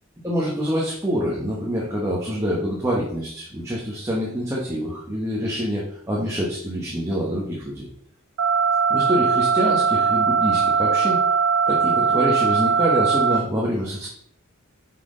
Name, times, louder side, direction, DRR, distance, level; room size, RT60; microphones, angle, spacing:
voice 1, 0.2-7.9 8.9-11.2 11.7-14.1, equal, 15° right, -4 dB, 1.1 m, -26 dB
sound 1, 8.4-13.4, right 6 dB, 70° right, 0.8 m, -20 dB
5.9 x 5.8 x 3.8 m, 0.65 s
head